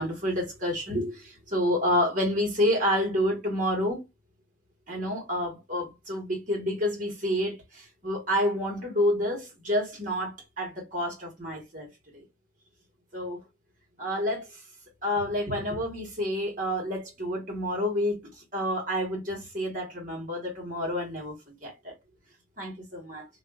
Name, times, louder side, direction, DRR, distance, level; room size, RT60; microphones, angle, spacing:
voice 1, 0.0-4.0 4.9-11.9 12.1-12.2 13.1-13.4 14.0-14.6 15.0-21.9 22.6-23.3, equal, 40° right, 1.4 m, -29 dB
2.7 x 2.5 x 2.2 m
head